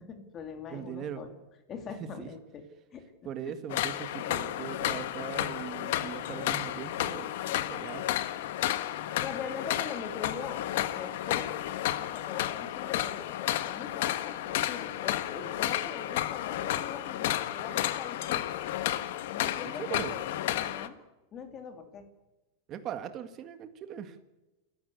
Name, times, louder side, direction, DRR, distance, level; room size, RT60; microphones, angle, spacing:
voice 1, 0.0-1.3 1.7-2.6 2.9-3.1 8.9-11.5 12.0-18.5 19.3-20.2 20.5-21.0 21.3-22.1, left 6 dB, 20° left, 7 dB, 2.8 m, -42 dB
voice 2, 0.7-1.2 2.0-2.3 3.2-8.1 19.8-20.1 22.7-24.2, right 9 dB, 25° right, 10 dB, 1.7 m, -40 dB
sound 1, 3.7-20.9, left 13 dB, 55° left, 1.4 m, -32 dB
28.5 x 15.0 x 8.3 m, 1.1 s
supercardioid pair, 180°, 0 cm